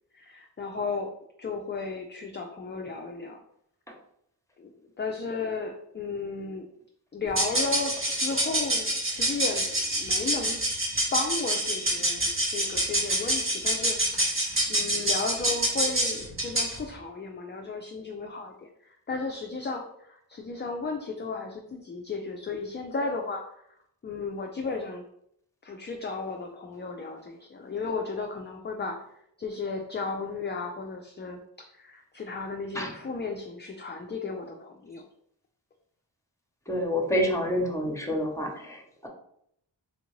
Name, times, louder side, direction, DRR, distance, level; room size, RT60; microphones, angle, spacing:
voice 1, 0.1-1.1 1.4-3.4 4.6-4.7 5.0-6.7 7.1-10.6 11.1-23.7 24.0-25.0 25.6-35.0, left 4 dB, 25° left, 2 dB, 0.3 m, -34 dB
sound 1, 7.3-16.8, right 1 dB, 30° right, 0.8 m, -27 dB
voice 2, 36.7-39.1, equal, 5° left, 1 dB, 0.8 m, -28 dB
3.5 x 2.5 x 3.0 m, 0.72 s
wide cardioid pair, 60°, 45 cm